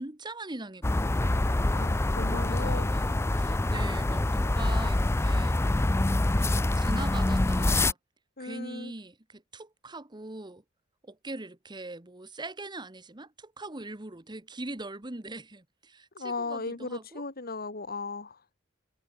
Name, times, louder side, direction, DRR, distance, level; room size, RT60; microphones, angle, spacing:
voice 1, 0.0-1.6 2.2-5.6 6.4-8.0 8.4-10.6 11.0-17.2, right 2 dB, 20° right, 1.4 m, -41 dB
sound 1, 0.8-7.9, left 2 dB, 15° left, 0.4 m, -25 dB
voice 2, 1.7-2.9 8.4-8.9 16.1-18.4, left 3 dB, 50° left, 2.4 m, -36 dB
head